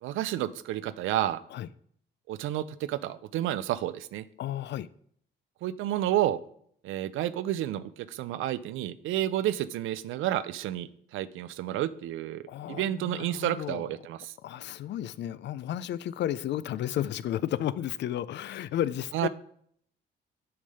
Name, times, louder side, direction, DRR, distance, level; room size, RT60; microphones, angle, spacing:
voice 1, 0.0-1.4 2.3-4.3 5.6-6.4 6.8-14.3 19.1-19.3, right 12 dB, 85° right, 0.5 m, -30 dB
voice 2, 4.4-4.9 12.5-13.9 14.4-19.3, left 11 dB, 65° left, 0.4 m, -33 dB
8.7 x 3.3 x 5.4 m
cardioid pair, 90°, 20 cm